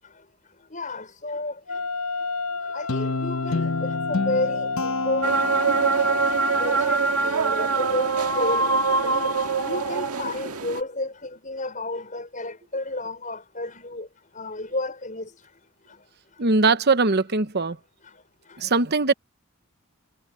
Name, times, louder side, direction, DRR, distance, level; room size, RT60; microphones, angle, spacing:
voice 1, 0.7-1.5 2.7-5.3 6.6-8.6 9.0-9.3 9.6-14.1 14.4-15.3, left 2 dB, 35° left, 6.1 m, -31 dB
Wind instrument woodwind instrument, 1.7-6.9, left 4 dB, 85° left, 7.3 m, -30 dB
Guitar, 2.9-6.2, left 3 dB, 70° left, 1.1 m, -29 dB
sound 1, 5.2-10.8, right 4 dB, 85° right, 1.8 m, -23 dB
voice 2, 16.4-17.8 18.6-19.1, right 3 dB, 45° right, 1.0 m, -21 dB
head